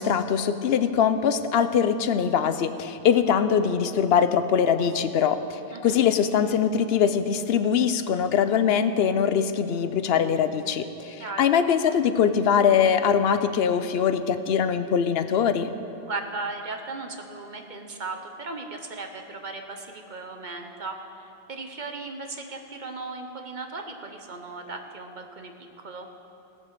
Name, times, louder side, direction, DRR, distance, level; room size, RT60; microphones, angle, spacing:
voice 1, 0.0-15.7, left 7 dB, 75° left, 11 dB, 0.8 m, -22 dB
voice 2, 11.2-11.5 16.0-26.1, right 3 dB, 50° right, 4 dB, 1.0 m, -37 dB
17.0 x 7.3 x 6.7 m, 2.9 s
omnidirectional pair, 1.1 m